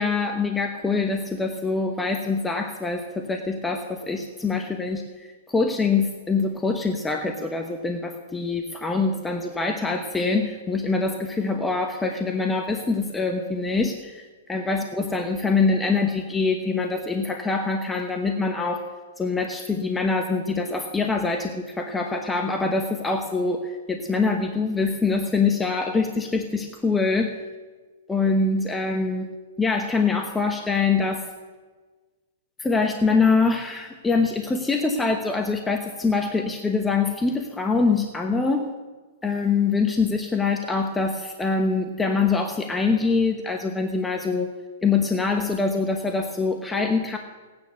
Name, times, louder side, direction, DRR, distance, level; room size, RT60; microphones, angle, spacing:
voice 1, 0.0-18.8 19.2-27.3 28.1-29.3 29.6-31.2 32.6-38.7 39.2-44.5 44.8-47.2, left 4 dB, 10° left, 4 dB, 1.0 m, -24 dB
17.5 x 9.7 x 6.3 m, 1.4 s
hypercardioid pair, 140°, 0 cm